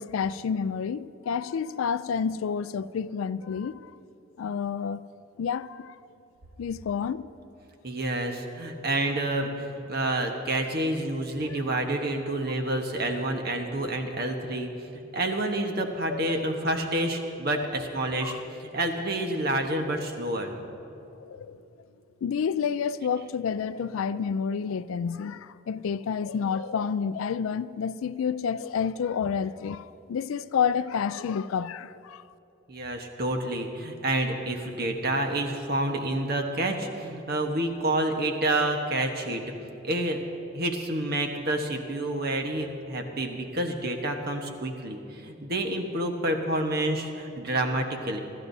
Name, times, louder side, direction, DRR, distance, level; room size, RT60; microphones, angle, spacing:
voice 1, 0.0-3.9 4.4-5.0 5.4-6.0 6.6-7.3 11.5-11.6 16.1-16.5 18.2-18.4 21.3-21.6 22.2-32.2, left 6 dB, 80° left, 0.3 m, -29 dB
voice 2, 7.8-20.5 32.7-39.4 39.8-40.2 40.5-48.2, right 1 dB, 50° right, 1.1 m, -28 dB
26.0 x 12.0 x 2.7 m
head